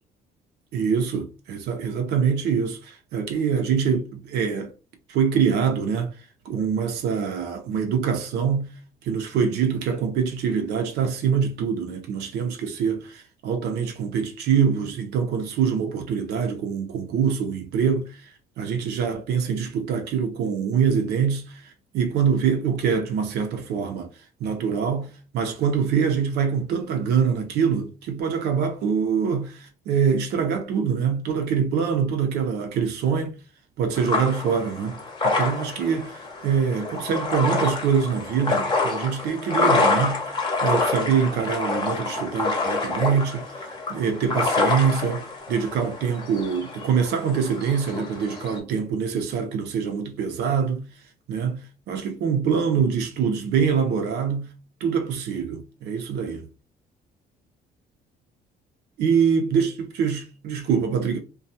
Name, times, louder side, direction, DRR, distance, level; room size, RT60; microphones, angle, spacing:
voice 1, 0.7-4.7 5.1-6.1 6.4-8.7 9.0-18.3 18.6-24.1 24.4-33.4 33.8-40.2 40.6-50.8 51.3-51.6 51.9-54.5 54.8-56.5 59.0-59.7 60.0-61.2, right 6 dB, 75° right, 0.7 m, -24 dB
sound 1, 33.9-48.6, left 3 dB, 25° left, 0.7 m, -27 dB
2.3 x 2.3 x 2.7 m
cardioid pair, 110°, 17 cm